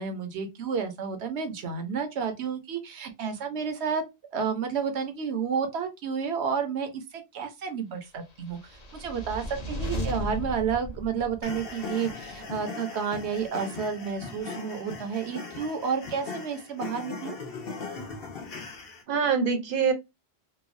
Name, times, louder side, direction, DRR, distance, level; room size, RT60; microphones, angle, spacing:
voice 1, 0.0-4.0 4.3-8.6 8.9-17.4, right 6 dB, 85° right, 1.0 m, -31 dB
sound 1, 8.4-11.8, equal, 45° left, 0.7 m, -35 dB
voice 2, 9.9-10.5 19.1-19.9, right 6 dB, 60° right, 0.7 m, -26 dB
sound 2, 11.4-19.0, left 4 dB, 65° left, 1.0 m, -39 dB
3.1 x 2.0 x 2.4 m
omnidirectional pair, 1.1 m